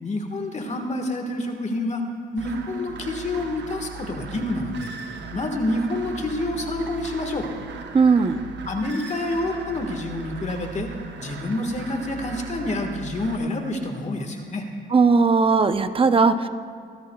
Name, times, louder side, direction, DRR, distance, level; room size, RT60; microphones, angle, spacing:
voice 1, 0.0-2.0 2.3-4.9 5.3-7.5 8.6-10.9 11.2-14.6, left 1 dB, 35° left, 4 dB, 1.6 m, -28 dB
sound 1, 2.4-13.4, right 5 dB, 60° right, 1.0 m, -38 dB
voice 2, 7.9-8.4 14.9-16.5, right 4 dB, 25° right, 10 dB, 0.7 m, -18 dB
24.0 x 13.0 x 2.3 m, 2.1 s
cardioid pair, 90°, 20 cm